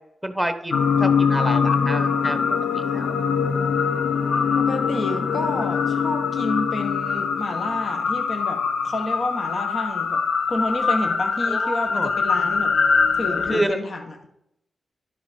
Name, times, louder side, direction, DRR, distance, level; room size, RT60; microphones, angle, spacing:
voice 1, 0.2-2.4 2.7-3.1 11.5-12.1 13.5-13.8, right 1 dB, ahead, 9 dB, 1.0 m, -28 dB
sound 1, 0.7-13.6, left 5 dB, 80° left, 0.7 m, -23 dB
voice 2, 4.6-10.2 10.5-12.7 13.1-14.3, left 2 dB, 45° left, 5 dB, 1.0 m, -29 dB
11.5 x 5.6 x 5.7 m, 0.79 s
wide cardioid pair, 120°, 0 cm